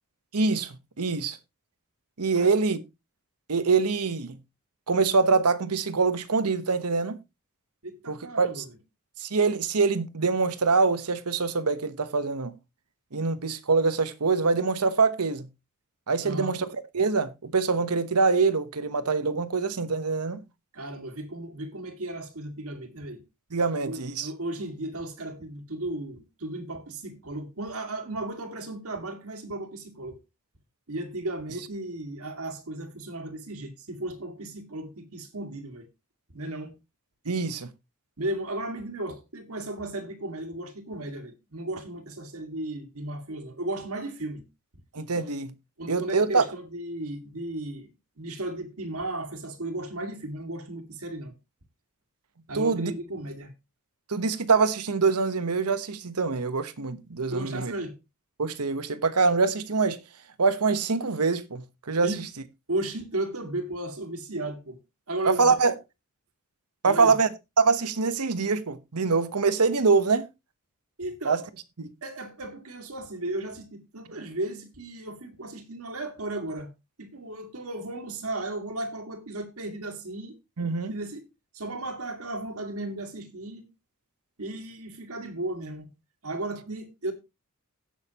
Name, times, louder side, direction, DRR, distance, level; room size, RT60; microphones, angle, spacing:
voice 1, 0.3-1.4 2.2-2.8 3.5-4.4 4.9-7.2 8.1-8.6 9.2-12.5 13.1-15.5 16.1-16.7 16.9-20.4 23.5-24.3 37.3-37.7 44.9-45.5 45.9-46.4 52.5-52.9 54.1-57.7 58.4-60.0 60.4-62.1 65.2-65.7 66.8-67.3 67.6-70.3 71.2-71.4 71.8-71.9 80.6-80.9, right 4 dB, 90° right, 1.1 m, -24 dB
voice 2, 7.8-8.7 16.2-16.6 20.7-23.2 23.8-30.2 30.9-35.9 36.3-36.8 38.2-44.4 45.1-45.3 45.8-47.9 48.2-51.3 52.5-53.5 57.3-58.0 62.0-62.2 62.7-64.8 65.1-65.6 66.9-67.2 71.0-71.5 72.0-76.7 77.0-80.4 80.9-81.2 81.5-83.7 84.4-85.9 86.2-87.1, right 1 dB, 70° right, 2.1 m, -35 dB
17.0 x 6.5 x 2.9 m
head